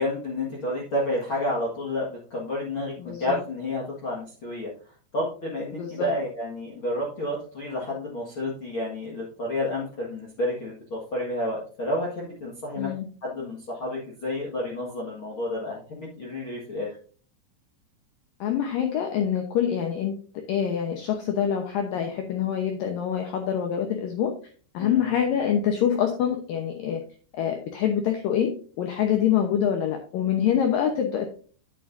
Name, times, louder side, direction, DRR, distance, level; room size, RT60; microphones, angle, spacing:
voice 1, 0.0-4.7 5.1-12.9 13.2-17.0 24.8-25.1, left 1 dB, 70° left, -3 dB, 1.2 m, -30 dB
voice 2, 3.0-3.4 5.7-6.1 12.8-13.1 18.4-24.3 24.7-27.0 27.3-31.3, left 9 dB, 90° left, 4 dB, 1.9 m, -25 dB
9.4 x 9.1 x 2.6 m, 0.42 s
omnidirectional pair, 5.4 m